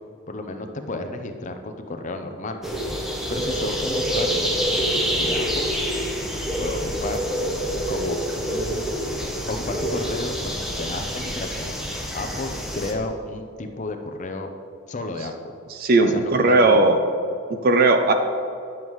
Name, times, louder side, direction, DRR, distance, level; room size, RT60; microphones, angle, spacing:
voice 1, 0.3-2.6 3.3-4.5 5.1-5.7 6.6-7.2 7.9-8.9 9.5-11.8 12.1-14.5 14.9-15.5 16.0-16.8, left 2 dB, 35° left, 6 dB, 0.6 m, -32 dB
sound 1, 2.6-12.9, equal, ahead, 0.7 m, -26 dB
voice 2, 15.7-17.0 17.5-18.1, right 2 dB, 45° right, 6 dB, 0.5 m, -17 dB
10.5 x 7.3 x 3.1 m, 2.5 s
head